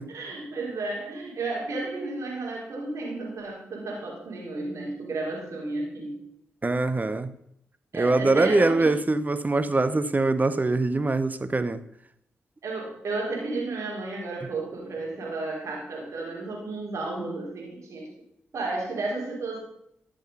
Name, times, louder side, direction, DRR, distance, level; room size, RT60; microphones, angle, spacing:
voice 1, 0.1-6.2 7.9-8.9 12.6-18.1 18.5-19.6, right 3 dB, 65° right, 4.1 m, -32 dB
voice 2, 6.6-7.3 7.9-11.8, right 2 dB, 30° right, 0.9 m, -23 dB
12.5 x 6.6 x 5.5 m
supercardioid pair, 40°, 5 cm